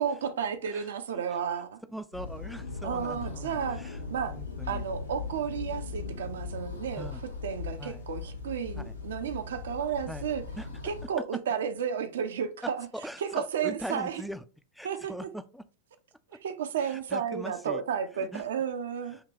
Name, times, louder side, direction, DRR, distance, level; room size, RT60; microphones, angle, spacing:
voice 1, 0.0-1.8 2.8-3.8 4.1-4.4 4.7-7.1 7.4-10.4 10.8-12.9 13.2-14.2 14.8-15.1 16.4-19.3, right 7 dB, 60° right, 0.5 m, -32 dB
voice 2, 1.9-4.0 4.3-4.8 7.0-7.2 7.8-8.0 8.8-8.9 10.1-10.2 10.6-10.7 12.6-14.4 14.7-15.6 16.8-17.8 18.2-18.4 19.1-19.3, equal, ahead, 0.4 m, -41 dB
sound 1, 2.1-11.1, left 4 dB, 80° left, 1.0 m, -39 dB
6.5 x 2.9 x 2.9 m
figure-of-eight pair, 90°, 0 cm